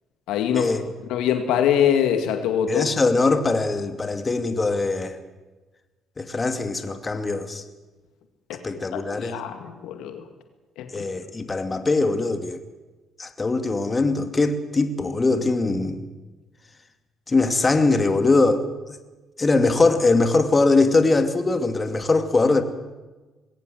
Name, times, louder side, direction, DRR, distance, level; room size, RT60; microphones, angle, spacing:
voice 1, 0.3-0.7 1.1-2.9 8.9-10.2 10.8-11.1, left 9 dB, 75° left, 7 dB, 2.1 m, -23 dB
voice 2, 2.7-5.2 6.2-7.6 8.6-9.4 10.9-12.6 13.2-16.1 17.3-19.0 19.4-22.6, left 3 dB, 30° left, 8 dB, 2.4 m, -21 dB
21.5 x 17.0 x 7.8 m, 1.2 s
hypercardioid pair, 55°, 0 cm